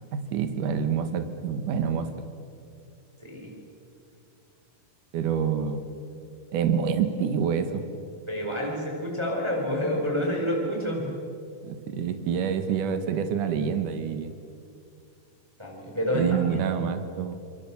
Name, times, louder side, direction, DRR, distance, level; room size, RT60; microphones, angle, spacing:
voice 1, 0.1-2.1 5.1-5.9 6.5-7.8 11.6-14.3 16.1-17.4, right 7 dB, 65° right, 8 dB, 2.9 m, -27 dB
voice 2, 3.2-3.5 8.3-11.2 15.6-16.6, equal, 5° right, -1 dB, 4.3 m, -28 dB
27.5 x 23.0 x 7.2 m, 2.4 s
omnidirectional pair, 4.3 m